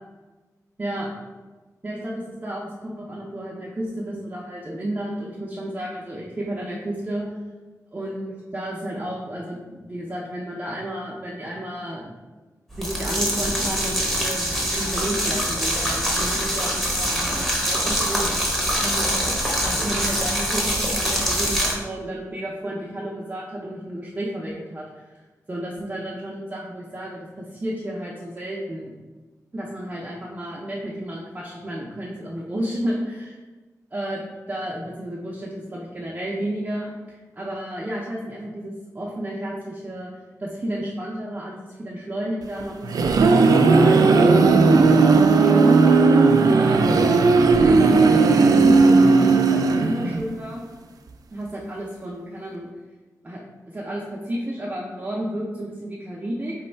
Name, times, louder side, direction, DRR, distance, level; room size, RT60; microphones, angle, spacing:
voice 1, 0.8-1.1 1.8-7.2 7.9-12.1 12.8-25.2 25.5-28.9 29.5-33.4 33.9-34.2 34.5-40.1 40.4-45.8 46.6-47.1 47.5-50.6 51.3-52.7 53.2-53.4 53.7-56.5, right 1 dB, 25° right, -5 dB, 0.5 m, -32 dB
sound 1, 12.7-21.7, equal, 5° left, 0.9 m, -24 dB
sound 2, 42.6-50.3, right 4 dB, 80° right, 0.3 m, -16 dB
3.4 x 3.1 x 4.5 m, 1.3 s
wide cardioid pair, 130°, 6 cm